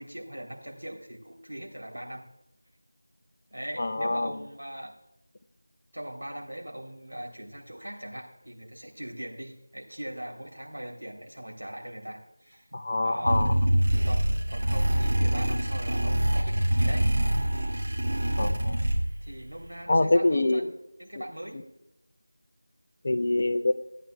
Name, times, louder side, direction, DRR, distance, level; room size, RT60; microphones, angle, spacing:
voice 1, 0.0-2.2 3.5-4.9 5.9-12.7 13.0-13.4 14.1-17.1 19.2-20.7 21.0-21.6, right 1 dB, 75° right, 1 dB, 3.3 m, -40 dB
voice 2, 3.8-4.3 12.7-13.5 18.4-18.8 19.9-20.7 23.0-23.7, left 2 dB, 35° left, 6 dB, 0.6 m, -25 dB
sound 1, 13.3-19.3, right 1 dB, 40° right, 2.3 m, -25 dB
16.5 x 9.3 x 2.3 m, 0.86 s
figure-of-eight pair, 170°, 0 cm